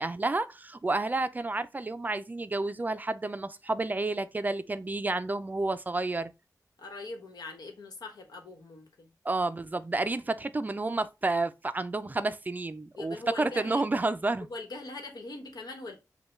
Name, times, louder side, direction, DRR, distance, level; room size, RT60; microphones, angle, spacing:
voice 1, 0.0-6.3 9.2-14.5, right 2 dB, 25° right, 0.3 m, -30 dB
voice 2, 6.8-9.1 12.9-13.8 14.4-16.0, left 2 dB, 85° left, 1.1 m, -42 dB
5.4 x 2.2 x 3.0 m
wide cardioid pair, 125°, 7 cm